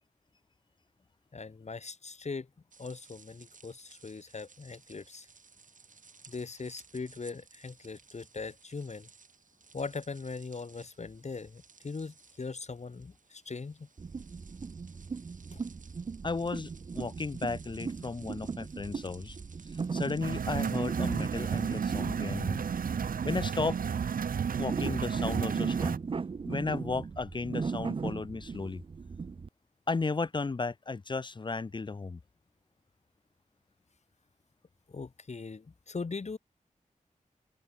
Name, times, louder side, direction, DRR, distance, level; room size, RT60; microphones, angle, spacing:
voice 1, 1.3-2.5 2.8-5.3 6.3-9.1 9.7-13.9 15.5-15.6 34.9-36.4, left 4 dB, 55° left, 2.5 m, -40 dB
sound 1, 2.7-22.0, right 5 dB, 65° right, 3.2 m, -58 dB
sound 2, 14.0-29.5, right 5 dB, 40° right, 0.4 m, -38 dB
voice 2, 16.2-16.7 16.9-19.4 19.9-22.6 23.2-23.8 24.6-26.0 26.4-28.8 29.9-32.2, left 4 dB, 35° left, 0.5 m, -34 dB
sound 3, 20.2-26.0, right 7 dB, 85° right, 0.7 m, -32 dB
open air
wide cardioid pair, 95°, 14 cm